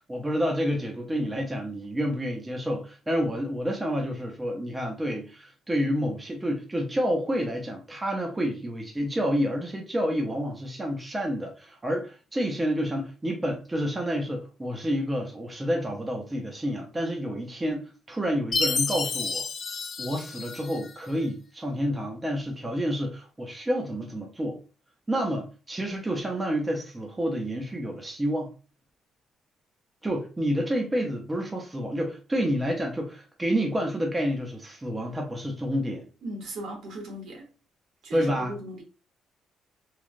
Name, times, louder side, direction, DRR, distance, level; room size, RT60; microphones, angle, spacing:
voice 1, 0.1-19.5 20.0-24.6 25.1-28.5 30.0-36.1 38.1-38.5, equal, 15° right, 0.6 m, -29 dB
Chime, 18.5-21.0, left 4 dB, 40° left, 0.4 m, -30 dB
voice 2, 36.2-37.5 38.0-38.8, right 1 dB, 70° right, 1.1 m, -37 dB
3.1 x 2.3 x 2.4 m
cardioid pair, 130°, 0 cm